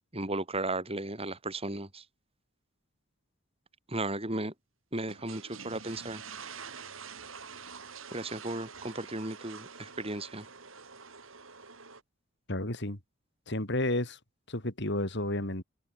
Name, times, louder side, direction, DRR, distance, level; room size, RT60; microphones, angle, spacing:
voice 1, 0.1-2.0 3.9-4.5 4.9-6.2 8.1-10.4, right 2 dB, 30° right, 4.9 m, -35 dB
sound 1, 5.0-12.0, right 6 dB, 75° right, 5.9 m, -47 dB
voice 2, 12.5-13.0 13.5-14.2 14.5-15.6, left 1 dB, 60° left, 4.2 m, -31 dB
head